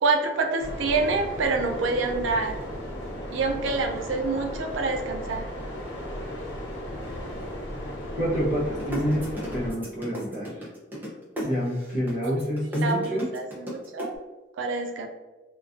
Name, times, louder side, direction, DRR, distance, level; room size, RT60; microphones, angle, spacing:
voice 1, 0.0-2.6 3.3-5.5 12.2-12.4 12.8-14.1 14.6-15.1, right 3 dB, 90° right, 3 dB, 0.4 m, -27 dB
sound 1, 0.6-9.7, equal, 85° left, 0.9 m, -35 dB
voice 2, 8.2-10.7 11.4-13.3, equal, 40° left, -5 dB, 0.7 m, -27 dB
sound 2, 8.8-14.1, equal, 10° right, 0.5 m, -35 dB
2.3 x 2.2 x 2.5 m, 1.2 s
head